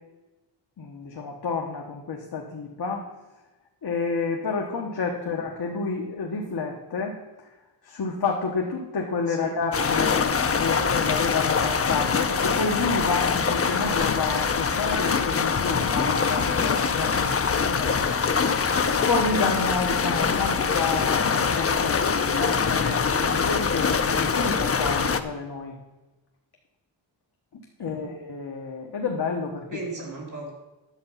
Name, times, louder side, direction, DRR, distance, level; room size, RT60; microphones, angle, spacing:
voice 1, 0.8-3.0 3.8-7.2 7.4-7.5 7.8-10.2 10.6-18.2 19.1-25.8 27.5-29.8, left 4 dB, 55° left, 0 dB, 1.2 m, -29 dB
sound 1, 9.7-25.2, left 5 dB, 30° left, 0.5 m, -24 dB
voice 2, 17.8-18.1 27.8-28.1 29.7-30.5, right 2 dB, 40° right, -2 dB, 2.8 m, -37 dB
10.5 x 7.9 x 5.6 m, 1.1 s
wide cardioid pair, 180°, 46 cm